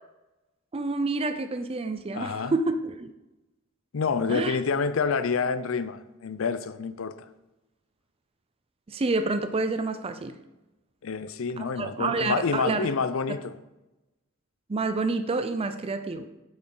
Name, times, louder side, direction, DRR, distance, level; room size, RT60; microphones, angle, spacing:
voice 1, 0.7-3.1 4.3-4.6 8.9-10.4 11.6-12.9 14.7-16.3, right 3 dB, 25° right, 0.4 m, -28 dB
voice 2, 2.1-2.5 3.9-7.3 11.0-13.5, left 5 dB, 65° left, 0.5 m, -28 dB
8.7 x 7.9 x 3.9 m
head